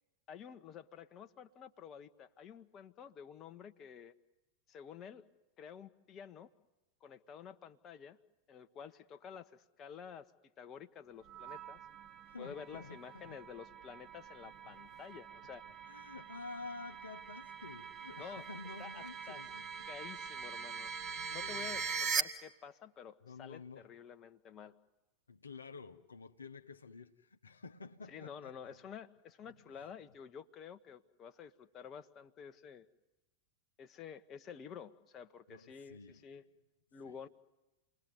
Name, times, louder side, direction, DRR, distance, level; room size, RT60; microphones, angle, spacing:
voice 1, 0.3-4.1 4.7-5.2 5.6-6.5 7.0-8.2 8.5-10.3 10.6-11.8 12.4-15.6 18.2-18.4 18.8-19.4 19.9-20.9 21.3-24.7 28.1-32.9 33.8-36.4 36.9-37.3, left 7 dB, 30° left, 1.3 m, -50 dB
sound 1, 11.3-22.2, right 6 dB, 30° right, 1.7 m, -42 dB
voice 2, 12.3-13.4 14.6-14.7 15.8-20.0 21.0-21.8 23.2-23.9 25.3-28.7 29.8-29.9 35.5-36.3 37.0-37.2, left 4 dB, 75° left, 1.1 m, -50 dB
29.5 x 20.5 x 9.7 m
figure-of-eight pair, 90°, 0 cm